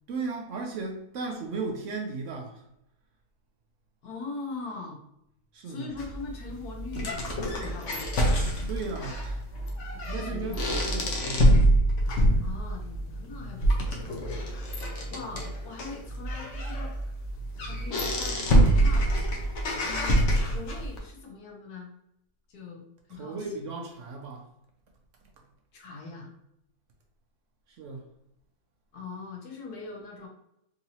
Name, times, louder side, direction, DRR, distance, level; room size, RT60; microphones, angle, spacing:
voice 1, 0.1-2.6 5.5-5.9 8.7-9.4 10.1-11.5 23.1-24.5 27.7-28.0, right 4 dB, 65° right, 0.8 m, -36 dB
voice 2, 4.0-5.0 5.6-8.1 9.9-10.9 12.4-14.4 15.1-16.9 17.7-19.0 19.8-21.9 22.5-23.7 25.7-26.3 28.9-30.3, left 4 dB, 85° left, 1.4 m, -41 dB
sound 1, 6.0-21.0, right 1 dB, 60° left, 1.0 m, -26 dB
3.8 x 2.7 x 2.8 m
omnidirectional pair, 1.6 m